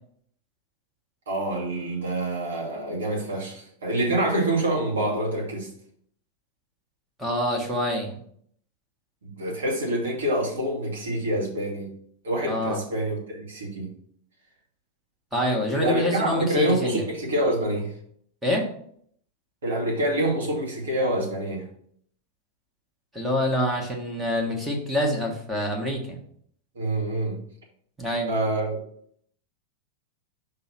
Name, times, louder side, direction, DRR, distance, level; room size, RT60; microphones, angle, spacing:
voice 1, 1.3-5.7 9.2-11.9 12.2-13.9 15.7-17.9 19.6-21.7 26.7-27.4 28.3-28.8, right 1 dB, 65° right, -3 dB, 2.5 m, -26 dB
voice 2, 7.2-8.1 12.4-12.8 15.3-17.0 18.4-18.6 23.1-26.2 28.0-28.3, equal, 5° right, -1 dB, 1.7 m, -26 dB
5.4 x 3.9 x 5.9 m, 0.64 s
figure-of-eight pair, 90°, 0 cm